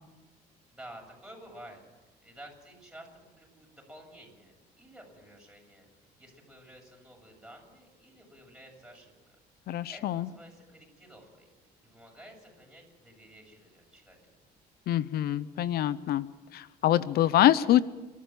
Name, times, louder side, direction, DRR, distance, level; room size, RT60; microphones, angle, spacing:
voice 1, 0.7-1.8 2.2-5.9 6.2-9.4 9.9-11.5 11.8-14.2, right 1 dB, 5° right, 0 dB, 7.7 m, -51 dB
voice 2, 9.7-10.3 14.9-16.3 16.5-17.8, left 12 dB, 65° left, 17 dB, 0.7 m, -25 dB
29.0 x 13.5 x 7.5 m, 1.2 s
cardioid pair, 110°, 17 cm